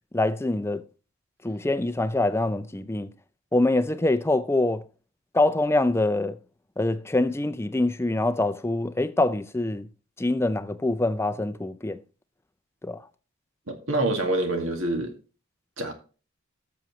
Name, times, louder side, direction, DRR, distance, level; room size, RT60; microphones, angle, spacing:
voice 1, 0.1-0.8 1.4-3.1 3.5-4.8 5.3-6.4 6.8-9.9 10.2-12.0 12.8-13.0, left 2 dB, 10° left, 0.5 m, -24 dB
voice 2, 13.7-15.1 15.8-15.9, right 2 dB, 70° right, 2.1 m, -26 dB
12.5 x 7.0 x 3.1 m
head